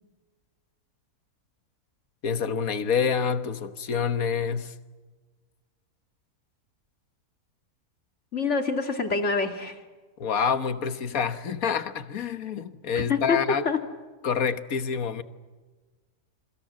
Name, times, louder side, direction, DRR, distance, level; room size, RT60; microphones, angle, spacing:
voice 1, 2.2-4.7 10.2-13.7 14.2-15.2, left 6 dB, 70° left, 1.7 m, -27 dB
voice 2, 8.3-9.8 12.9-13.8, left 4 dB, 50° left, 2.6 m, -26 dB
27.5 x 24.0 x 7.5 m
omnidirectional pair, 1.5 m